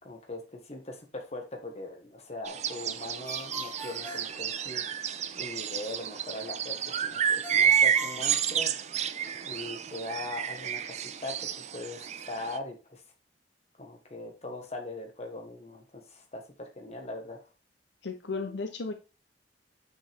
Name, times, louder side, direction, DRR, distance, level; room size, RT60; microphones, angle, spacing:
voice 1, 0.0-8.7 9.4-13.0 13.8-17.4, left 2 dB, 35° left, 3 dB, 1.5 m, -41 dB
sound 1, 2.4-12.6, right 8 dB, 40° right, 0.4 m, -30 dB
Ringtone, 3.2-5.2 7.4-9.3, left 1 dB, 10° left, 1.8 m, -43 dB
voice 2, 18.0-18.9, left 4 dB, 80° left, 7 dB, 0.8 m, -34 dB
6.3 x 5.6 x 3.5 m, 0.32 s
head